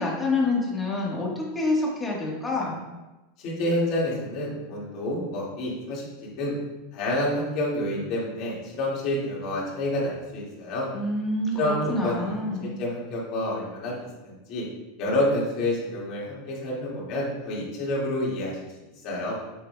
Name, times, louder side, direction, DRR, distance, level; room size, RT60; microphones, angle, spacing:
voice 1, 0.0-2.8 10.9-12.8, left 2 dB, 10° left, -3 dB, 1.3 m, -27 dB
voice 2, 3.4-6.1 6.4-6.6 6.9-10.9 11.5-13.9 14.2-14.6 15.0-18.6 19.0-19.4, left 1 dB, 40° left, -5 dB, 2.0 m, -28 dB
7.0 x 6.7 x 2.3 m, 1.1 s
supercardioid pair, 165°, 0 cm